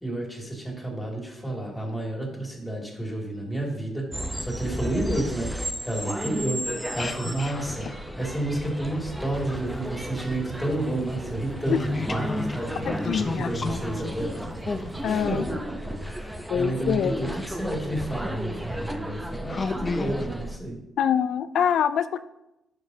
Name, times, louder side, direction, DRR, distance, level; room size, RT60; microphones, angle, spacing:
voice 1, 0.0-4.1 4.4-5.5 5.8-6.6 6.9-14.4 15.0-20.8, right 1 dB, 10° left, -2 dB, 2.4 m, -31 dB
sound 1, 4.1-20.6, right 1 dB, 10° right, 0.7 m, -34 dB
sound 2, 6.8-9.6 9.9-16.7 17.6-17.7 18.3-18.5 19.0-19.1 19.5-20.3, left 3 dB, 30° left, 0.6 m, -34 dB
sound 3, 9.2-15.8, right 5 dB, 65° right, 0.9 m, -42 dB
voice 2, 12.9-13.5 15.0-15.4 16.5-17.3 21.0-22.2, left 8 dB, 70° left, 13 dB, 0.3 m, -25 dB
11.5 x 5.3 x 2.8 m, 0.89 s
cardioid pair, 90°, 0 cm